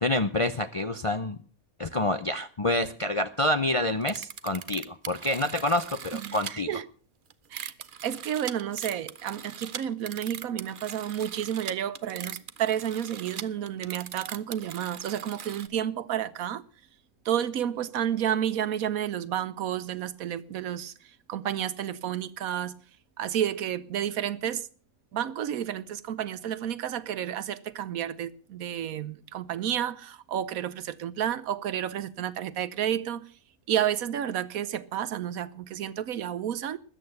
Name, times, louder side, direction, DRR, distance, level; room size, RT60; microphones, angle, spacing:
voice 1, 0.0-1.4 1.8-6.7, left 1 dB, 45° left, 0.4 m, -27 dB
sound 1, 4.0-6.5 7.3-15.7, right 7 dB, 45° right, 0.8 m, -40 dB
voice 2, 6.1-6.8 7.5-7.7 8.0-16.6 17.2-22.8 23.2-24.7 25.1-33.2 33.7-36.8, right 10 dB, 85° right, 1.3 m, -31 dB
13.5 x 8.7 x 8.0 m
omnidirectional pair, 1.5 m